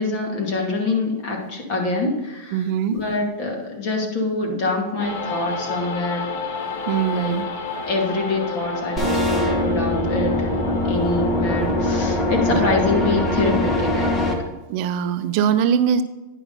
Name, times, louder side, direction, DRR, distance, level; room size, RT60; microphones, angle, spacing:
voice 1, 0.0-2.6 2.9-6.3 7.1-7.3 7.9-10.6 10.9-14.4, left 2 dB, 40° left, 0 dB, 2.4 m, -25 dB
voice 2, 2.5-3.0 6.9-7.4 11.6-11.7 12.5-12.7 14.7-16.0, right 8 dB, 45° right, 10 dB, 0.5 m, -22 dB
sound 1, 5.0-13.1, left 5 dB, 65° left, 1.3 m, -31 dB
sound 2, 9.0-14.3, left 1 dB, 10° left, 1.3 m, -22 dB
9.9 x 5.9 x 4.1 m, 1.1 s
supercardioid pair, 150°, 0 cm